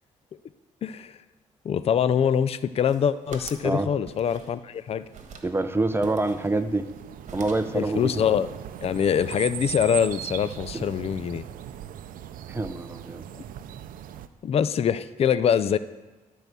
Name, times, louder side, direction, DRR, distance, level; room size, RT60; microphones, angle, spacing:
voice 1, 0.8-1.2 1.6-5.0 7.7-8.5 8.8-11.5 13.3-13.4 14.4-15.8, left 8 dB, 45° left, 14 dB, 0.4 m, -24 dB
sound 1, 2.7-3.7 4.1-4.8 5.1-5.5 6.0-7.0 7.3-7.8, right 5 dB, 55° right, 1.4 m, -44 dB
sound 2, 4.9-14.3, right 10 dB, 85° right, 0.5 m, -39 dB
voice 2, 5.4-6.9 7.3-8.1 10.7-10.8 12.5-13.2, right 2 dB, 15° right, 10 dB, 0.6 m, -26 dB
12.0 x 4.6 x 6.7 m, 1.2 s
cardioid pair, 90°, 14 cm